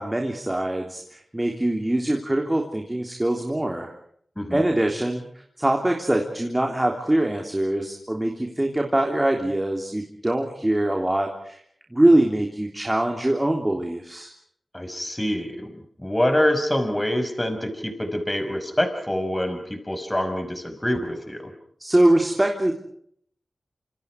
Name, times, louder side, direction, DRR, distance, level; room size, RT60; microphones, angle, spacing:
voice 1, 0.0-3.9 4.5-5.2 5.6-11.6 11.9-14.3 21.8-22.7, right 1 dB, 20° right, 2 dB, 3.5 m, -23 dB
voice 2, 14.7-15.7 16.0-21.5, left 1 dB, 15° left, 7 dB, 5.6 m, -25 dB
27.5 x 26.5 x 4.9 m, 0.63 s
cardioid pair, 55°, 0 cm